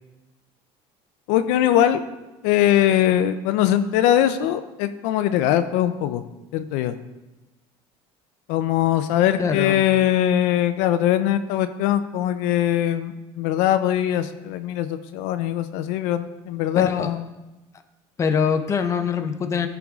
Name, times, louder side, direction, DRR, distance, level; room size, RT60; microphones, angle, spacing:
voice 1, 1.3-2.0 2.4-6.2 6.5-7.0 8.5-17.3, left 11 dB, 85° left, 10 dB, 0.5 m, -21 dB
voice 2, 9.4-9.9 16.8-17.1 18.2-19.7, left 6 dB, 25° left, 7 dB, 0.6 m, -23 dB
14.0 x 4.7 x 3.6 m, 1.0 s
cardioid pair, 140°, 12 cm